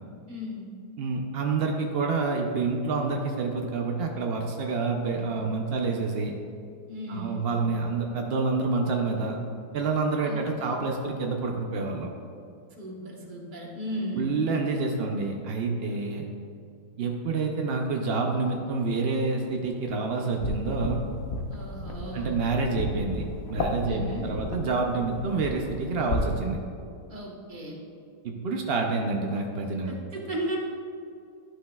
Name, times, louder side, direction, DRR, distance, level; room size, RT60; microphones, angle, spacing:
voice 1, 0.3-0.7 6.9-7.5 10.3-10.4 12.8-14.3 21.5-22.3 23.9-24.3 27.1-27.8 29.9-30.6, equal, 35° right, -2 dB, 1.0 m, -35 dB
voice 2, 1.0-6.3 7.1-9.4 9.7-12.1 14.1-16.3 17.0-21.0 22.1-26.6 28.2-29.9, right 4 dB, 80° right, 2 dB, 0.5 m, -28 dB
sound 1, 20.4-26.3, left 2 dB, 55° left, 0.7 m, -34 dB
11.5 x 6.3 x 2.3 m, 2.4 s
omnidirectional pair, 1.8 m